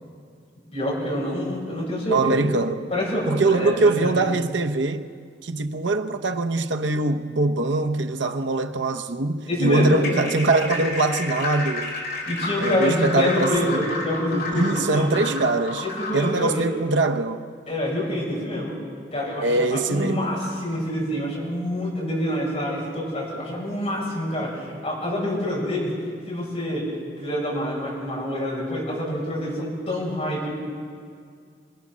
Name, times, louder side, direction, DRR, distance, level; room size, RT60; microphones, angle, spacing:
voice 1, 0.7-2.5 2.9-4.2 9.5-10.0 12.3-15.1 15.8-16.7 17.7-18.8 19.1-25.9 26.3-26.9 27.2-30.5, left 1 dB, 35° left, 7.0 m, -26 dB
voice 2, 2.1-2.9 3.3-5.1 5.4-11.9 12.6-13.8 14.3-15.8 16.1-17.4 19.4-20.3, right 2 dB, 80° right, 0.9 m, -23 dB
sound 1, 9.9-16.4, left 2 dB, 55° left, 4.6 m, -31 dB
25.5 x 19.0 x 6.3 m
head